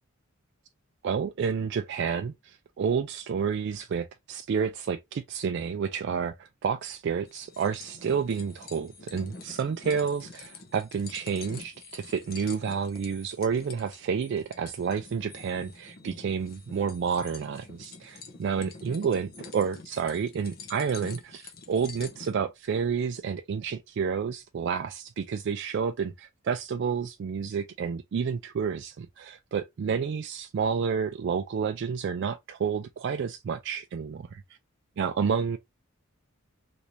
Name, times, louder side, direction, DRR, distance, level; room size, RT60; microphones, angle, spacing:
voice 1, 1.0-34.4 35.0-35.6, right 6 dB, 55° right, 0.3 m, -30 dB
sound 1, 7.3-22.3, left 4 dB, 45° left, 0.6 m, -47 dB
3.2 x 2.6 x 2.9 m
head